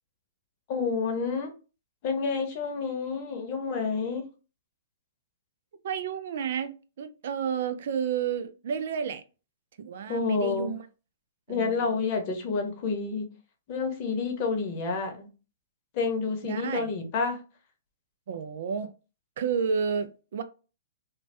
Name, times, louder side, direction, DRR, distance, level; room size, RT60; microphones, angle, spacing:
voice 1, 0.7-1.5 2.0-4.3 10.1-10.7 11.5-13.3 13.7-15.3 15.9-17.4, left 4 dB, 40° left, 0.8 m, -29 dB
voice 2, 5.8-9.2 9.8-10.9 11.5-11.9 16.4-16.9 18.3-18.9 19.4-20.4, right 7 dB, 60° right, 0.3 m, -31 dB
2.6 x 2.2 x 3.3 m
hypercardioid pair, 125°, 0 cm